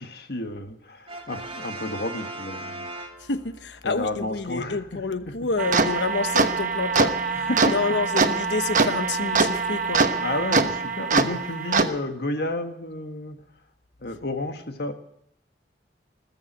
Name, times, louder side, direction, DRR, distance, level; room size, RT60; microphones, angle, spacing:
voice 1, 0.0-2.8 3.8-5.0 7.4-7.7 10.2-13.4 14.0-14.9, left 2 dB, 60° left, 5 dB, 1.6 m, -31 dB
Brass instrument, 1.1-3.7, right 2 dB, 30° right, 2.3 m, -38 dB
voice 2, 3.2-10.0, left 3 dB, 85° left, 11 dB, 1.0 m, -28 dB
sound 1, 5.6-11.9, right 4 dB, 45° right, 1.1 m, -23 dB
20.5 x 7.3 x 9.6 m, 0.75 s
head